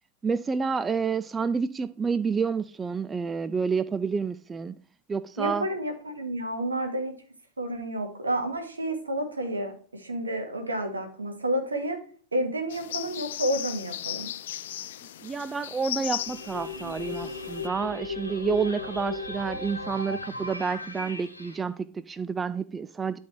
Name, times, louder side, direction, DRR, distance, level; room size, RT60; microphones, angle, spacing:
voice 1, 0.2-4.8 5.1-5.7 15.2-23.2, right 5 dB, 15° right, 0.4 m, -29 dB
voice 2, 5.4-7.1 7.6-12.0 12.3-14.3, right 1 dB, 75° right, 1.7 m, -30 dB
sound 1, 12.7-17.7, left 12 dB, 55° left, 0.4 m, -37 dB
sound 2, 16.1-21.6, left 2 dB, 85° left, 1.1 m, -36 dB
11.5 x 4.0 x 4.4 m
figure-of-eight pair, 90°, 0 cm